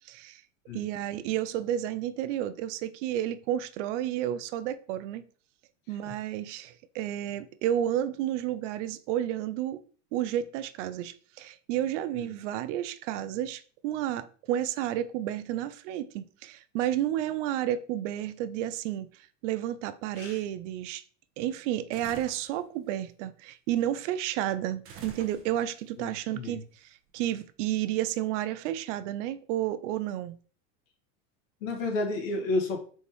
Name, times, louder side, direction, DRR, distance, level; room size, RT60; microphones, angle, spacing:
voice 1, 0.0-0.4 0.7-5.2 5.9-9.8 10.1-21.0 21.4-30.4, right 12 dB, 70° right, 0.5 m, -31 dB
Dinosaur falls to the ground, 21.9-22.5 24.8-25.8, right 5 dB, 35° right, 0.9 m, -46 dB
voice 2, 26.0-26.6 31.6-32.8, left 2 dB, 85° left, 1.6 m, -31 dB
4.1 x 3.6 x 3.0 m
supercardioid pair, 135°, 38 cm